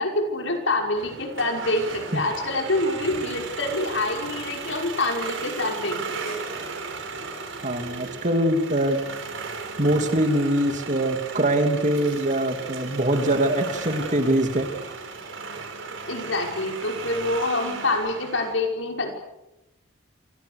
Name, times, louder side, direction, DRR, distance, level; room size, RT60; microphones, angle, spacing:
voice 1, 0.0-6.0 6.2-6.4 16.1-19.1, left 2 dB, 70° left, 3 dB, 5.6 m, -26 dB
sound 1, 1.0-18.5, right 4 dB, 75° right, 5.1 m, -35 dB
voice 2, 7.6-9.1 9.8-14.7, right 1 dB, 40° right, 6 dB, 2.8 m, -23 dB
28.0 x 25.5 x 6.7 m, 0.94 s
head